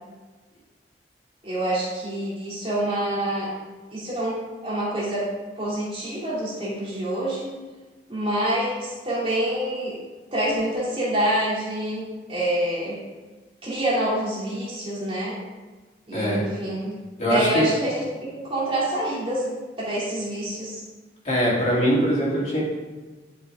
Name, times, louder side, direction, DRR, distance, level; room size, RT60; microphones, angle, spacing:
voice 1, 1.4-3.5 3.9-4.4 4.6-5.3 5.6-7.5 8.1-10.0 10.3-13.0 13.6-15.4 16.1-16.9 17.3-19.5 19.8-20.8, right 1 dB, 30° right, -7 dB, 2.7 m, -26 dB
voice 2, 16.1-16.4 17.2-17.6 21.2-22.6, equal, 40° left, -6 dB, 2.8 m, -22 dB
11.5 x 5.7 x 3.7 m, 1.3 s
head